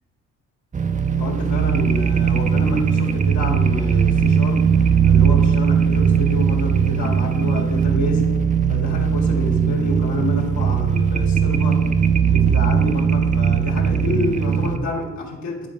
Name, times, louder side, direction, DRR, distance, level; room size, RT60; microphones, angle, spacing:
sound 1, 0.7-14.8, right 7 dB, 25° right, 0.6 m, -19 dB
voice 1, 1.2-4.7 5.0-8.3 8.7-11.9 12.3-15.7, left 2 dB, 70° left, 0 dB, 1.9 m, -28 dB
9.5 x 3.8 x 6.8 m, 1.3 s
cardioid pair, 90°, 30 cm